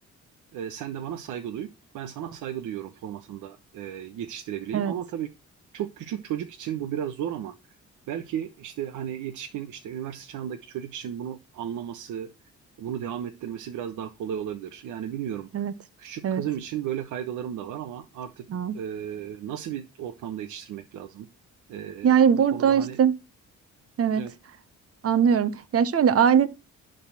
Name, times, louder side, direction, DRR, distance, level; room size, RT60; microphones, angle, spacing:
voice 1, 0.5-5.3 5.7-7.5 8.1-12.3 12.8-15.7 16.0-18.5 18.7-21.3 21.7-22.2 22.5-23.0 24.1-24.3, right 10 dB, 85° right, 1.2 m, -34 dB
voice 2, 22.0-23.1 24.0-24.2 25.0-26.5, right 8 dB, 50° right, 1.2 m, -21 dB
11.5 x 4.0 x 7.6 m
cardioid pair, 90°, 30 cm